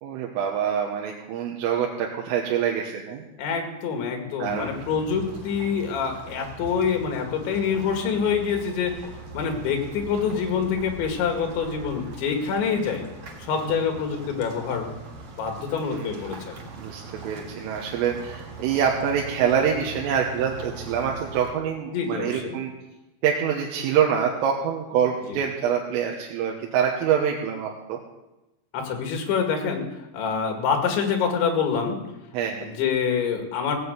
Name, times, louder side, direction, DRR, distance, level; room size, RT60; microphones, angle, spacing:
voice 1, 0.0-3.3 4.4-4.7 15.8-16.4 16.8-22.7 23.2-28.0 32.3-32.7, right 8 dB, 90° right, 0 dB, 3.8 m, -25 dB
voice 2, 3.4-9.1 9.3-13.0 13.4-14.9 15.4-16.7 21.9-22.6 25.3-25.4 28.7-29.9 30.1-32.0 32.6-33.8, left 6 dB, 70° left, 3 dB, 4.2 m, -26 dB
sound 1, 4.4-21.5, right 3 dB, 70° right, 1.4 m, -41 dB
16.5 x 7.6 x 8.1 m, 1.0 s
omnidirectional pair, 5.7 m